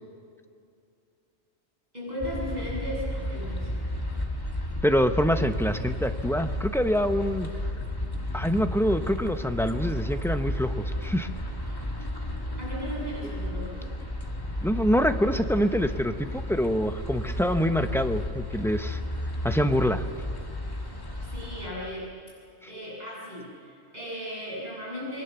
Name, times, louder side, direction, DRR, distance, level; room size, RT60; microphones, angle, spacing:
voice 1, 1.9-3.9 12.6-13.9 21.2-22.1 22.6-25.2, equal, 35° right, -6 dB, 8.2 m, -36 dB
sound 1, 2.2-21.7, left 1 dB, 20° left, 2.0 m, -33 dB
voice 2, 4.8-7.5 8.3-11.3 14.6-19.0 19.4-20.0, equal, ahead, 7 dB, 0.8 m, -25 dB
27.5 x 22.0 x 7.0 m, 2.6 s
omnidirectional pair, 1.2 m